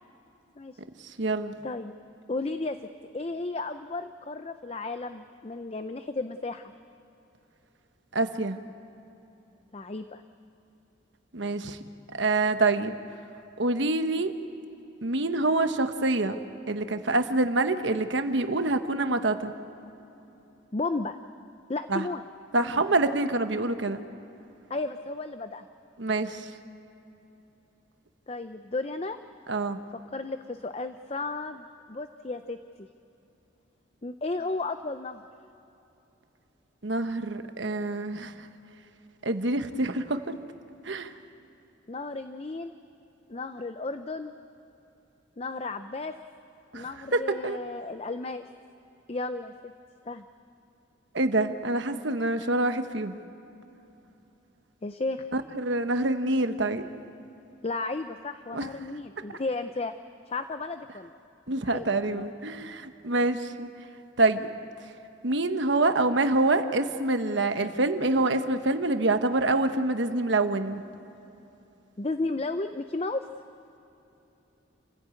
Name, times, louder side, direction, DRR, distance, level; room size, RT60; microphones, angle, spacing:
voice 1, 1.0-1.5 8.1-8.6 11.3-11.8 12.2-13.0 13.6-14.3 15.0-16.4 16.7-19.5 21.9-22.1 22.5-24.0 26.0-26.5 29.5-29.8 36.8-38.3 39.2-40.3 40.8-41.1 46.7-46.9 47.1-47.6 51.1-53.2 55.3-56.8 58.5-58.7 61.5-63.7 64.2-64.5 65.2-70.8, right 2 dB, 70° right, 8 dB, 1.2 m, -26 dB
voice 2, 1.6-1.9 2.3-2.8 3.1-6.7 9.7-10.2 20.7-21.2 21.7-22.3 22.6-22.8 24.7-25.7 28.3-29.2 29.9-32.9 34.0-35.2 41.9-42.8 43.3-44.4 45.4-46.2 46.7-48.5 49.1-49.7 50.1-50.2 54.8-55.3 57.6-59.9 60.3-61.1 61.6-62.3 72.0-73.2, left 3 dB, 30° left, 9 dB, 0.5 m, -34 dB
28.5 x 16.0 x 8.4 m, 3.0 s
head